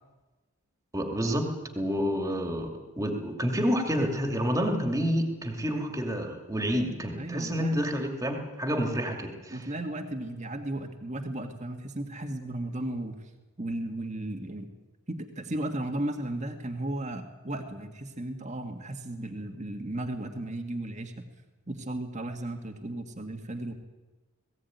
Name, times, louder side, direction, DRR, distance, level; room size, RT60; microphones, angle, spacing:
voice 1, 0.9-1.5 1.7-2.7 3.0-9.7, equal, 15° right, 4 dB, 2.5 m, -29 dB
voice 2, 7.2-7.8 9.5-13.2 13.6-14.7 15.1-21.2 21.7-23.7, right 1 dB, 30° right, 4 dB, 1.8 m, -35 dB
20.0 x 16.0 x 9.5 m, 1.2 s
head